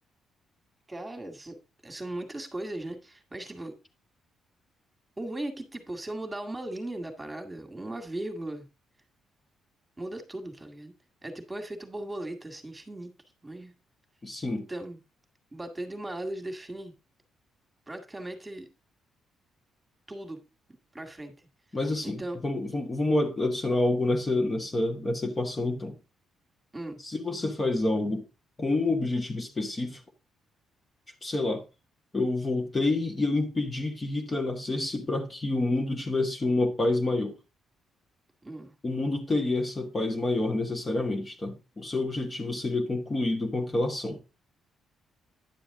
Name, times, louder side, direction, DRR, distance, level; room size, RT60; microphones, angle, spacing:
voice 1, 0.9-3.7 5.2-8.7 10.0-10.9 11.2-13.1 13.4-13.7 14.7-15.0 15.5-16.9 17.9-18.7 20.1-20.4 20.9-21.3 22.0-22.4 26.7-27.0 38.4-38.7, right 1 dB, 15° right, 2.1 m, -37 dB
voice 2, 14.2-14.7 21.7-26.0 27.0-28.2 28.6-30.0 31.2-31.6 32.1-37.4 38.8-44.2, left 2 dB, 25° left, 1.6 m, -28 dB
10.5 x 7.0 x 3.7 m
cardioid pair, 90°, 0 cm